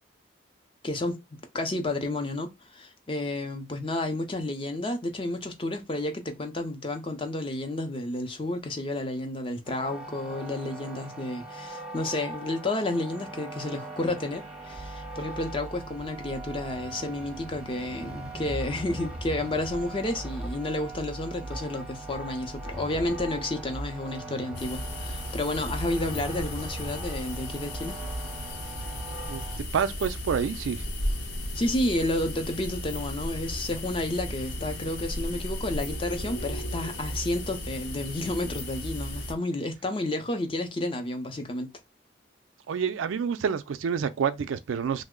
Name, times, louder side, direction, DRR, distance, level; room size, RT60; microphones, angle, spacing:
voice 1, 0.8-28.0 31.5-41.7, left 1 dB, 25° left, 0.5 m, -31 dB
sound 1, 9.6-29.6, right 2 dB, 5° right, 0.7 m, -39 dB
sound 2, 24.5-39.3, left 1 dB, 60° left, 0.8 m, -35 dB
voice 2, 29.3-30.8 42.7-45.0, right 7 dB, 85° right, 0.4 m, -28 dB
3.1 x 2.0 x 3.6 m
head